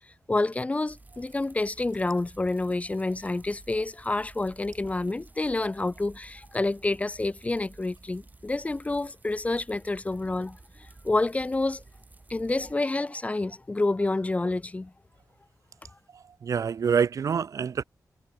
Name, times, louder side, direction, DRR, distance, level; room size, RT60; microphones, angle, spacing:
voice 1, 0.3-11.8 12.3-14.9, left 2 dB, 20° left, 0.7 m, -28 dB
sound 1, 0.9-12.7, right 2 dB, 25° right, 2.0 m, -53 dB
voice 2, 16.1-17.8, right 6 dB, 60° right, 0.4 m, -26 dB
wide cardioid pair, 105°, 7 cm